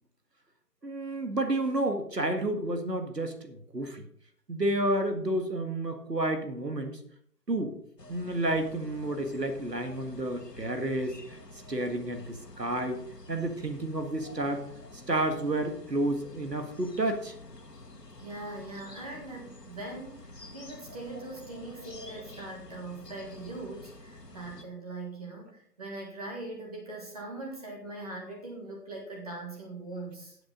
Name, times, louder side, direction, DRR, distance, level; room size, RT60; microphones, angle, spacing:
voice 1, 0.8-4.0 4.5-7.0 7.5-7.7 8.1-11.2 11.7-13.0 13.3-14.6 15.1-17.3, right 1 dB, 85° right, 6 dB, 1.8 m, -30 dB
sound 1, 8.0-24.6, left 2 dB, 80° left, 1.8 m, -49 dB
voice 2, 18.2-30.4, right 2 dB, 25° right, -1 dB, 1.8 m, -41 dB
12.5 x 7.8 x 3.9 m, 0.66 s
figure-of-eight pair, 155°, 48 cm